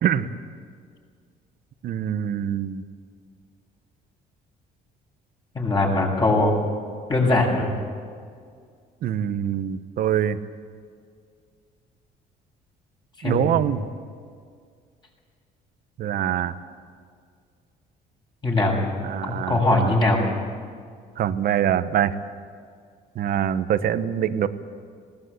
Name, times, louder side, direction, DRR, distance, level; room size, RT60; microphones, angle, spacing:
voice 1, 1.8-2.8 9.0-10.4 13.2-13.8 16.0-16.5 19.0-20.0 21.2-22.2 23.1-24.5, right 10 dB, 60° right, 12 dB, 1.1 m, -24 dB
voice 2, 5.5-6.6 7.1-7.7 13.2-13.5 18.4-18.8 19.2-20.3, left 2 dB, 25° left, -1 dB, 6.8 m, -21 dB
19.5 x 17.5 x 8.3 m, 2.1 s
cardioid pair, 110°, 17 cm